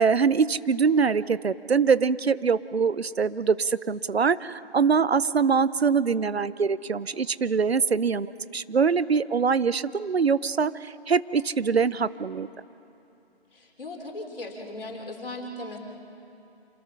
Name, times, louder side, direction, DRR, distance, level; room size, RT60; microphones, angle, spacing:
voice 1, 0.0-12.5, right 5 dB, 75° right, 17 dB, 0.7 m, -23 dB
voice 2, 13.5-15.8, left 2 dB, 60° left, 1 dB, 3.6 m, -37 dB
27.0 x 19.5 x 5.6 m, 2.8 s
figure-of-eight pair, 150°, 32 cm